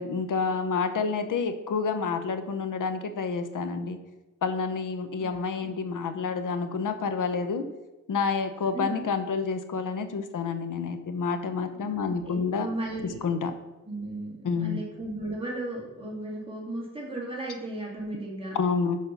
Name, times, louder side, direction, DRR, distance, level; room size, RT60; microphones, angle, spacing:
voice 1, 0.0-4.0 4.4-7.6 8.1-12.7 13.2-13.5 14.4-14.8 18.5-19.0, left 5 dB, 85° left, 9 dB, 0.8 m, -29 dB
voice 2, 5.2-5.7 8.7-9.1 11.8-13.2 13.8-18.6, right 2 dB, 20° right, -4 dB, 2.8 m, -35 dB
6.4 x 5.3 x 5.4 m, 1.1 s
wide cardioid pair, 90°, 31 cm